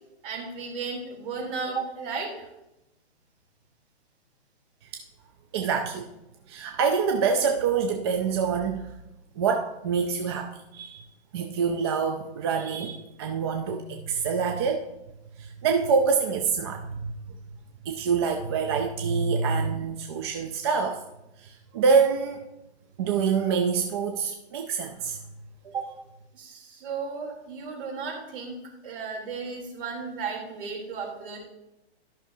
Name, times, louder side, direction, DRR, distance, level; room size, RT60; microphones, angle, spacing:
voice 1, 0.2-2.5 25.6-25.8 26.3-28.6 28.8-31.4, right 5 dB, 55° right, -1 dB, 3.2 m, -34 dB
voice 2, 5.5-6.1 6.5-9.0 9.4-11.0 11.3-14.8 15.4-17.1 17.8-21.0 21.4-22.4 23.0-25.2, right 5 dB, 25° right, 3 dB, 0.5 m, -26 dB
13.0 x 6.0 x 2.7 m, 0.91 s
hypercardioid pair, 145°, 33 cm